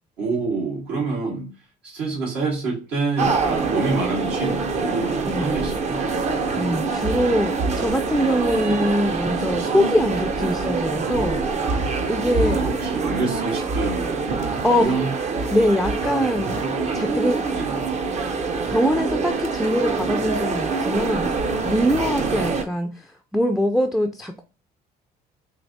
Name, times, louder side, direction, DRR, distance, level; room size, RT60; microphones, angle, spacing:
voice 1, 0.2-1.5 1.8-6.2 8.6-8.9 12.4-15.1 17.5-17.8 22.1-22.5, right 3 dB, 80° right, 1.6 m, -27 dB
sound 1, 3.2-22.6, right 4 dB, 40° right, 0.6 m, -25 dB
voice 2, 5.3-5.6 6.1-11.8 12.1-12.6 14.6-14.9 15.5-16.6 16.9-17.4 18.7-21.4 21.6-23.1 23.3-24.4, equal, ahead, 0.3 m, -23 dB
4.4 x 2.8 x 2.6 m
cardioid pair, 110°, 17 cm